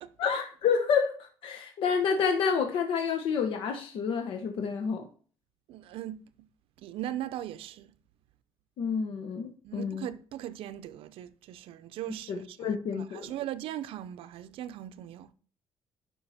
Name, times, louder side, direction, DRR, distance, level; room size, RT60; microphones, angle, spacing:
voice 1, 0.2-5.1 8.8-10.1 12.3-13.3, left 6 dB, 70° left, 1.1 m, -29 dB
voice 2, 5.7-6.2 6.8-7.9 9.6-15.3, right 12 dB, 80° right, 0.7 m, -39 dB
10.0 x 5.7 x 4.2 m
cardioid pair, 145°, 9 cm